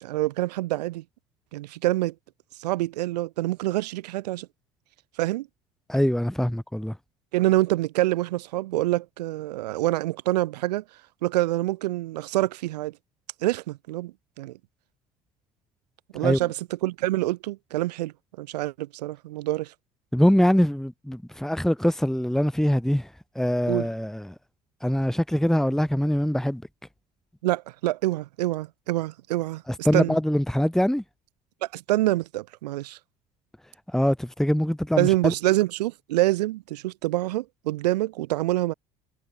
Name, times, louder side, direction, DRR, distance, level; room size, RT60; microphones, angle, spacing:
voice 1, 0.0-1.0 1.5-2.1 2.6-4.5 5.2-5.5 7.3-10.8 11.2-12.9 13.4-14.6 16.1-19.7 23.7-23.9 27.4-30.2 31.6-33.0 35.0-38.7, right 17 dB, 85° right, 1.1 m, -26 dB
voice 2, 5.9-6.9 16.2-16.4 20.1-23.1 23.4-24.3 24.8-26.6 29.8-31.0 33.9-35.3, equal, ahead, 2.3 m, -23 dB
hypercardioid pair, 65°, 20 cm